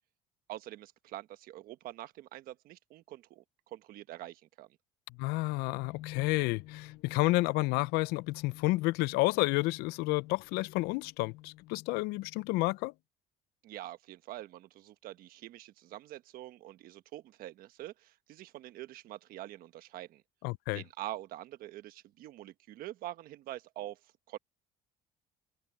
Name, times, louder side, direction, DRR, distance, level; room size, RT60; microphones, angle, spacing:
voice 1, 0.5-4.7 13.6-20.2 20.7-24.0 24.3-24.4, right 14 dB, 65° right, 1.3 m, -45 dB
sound 1, 5.1-12.8, left 17 dB, 65° left, 1.2 m, -50 dB
voice 2, 5.2-12.9 20.4-20.8, left 22 dB, 90° left, 0.5 m, -30 dB
cardioid pair, 145°, 16 cm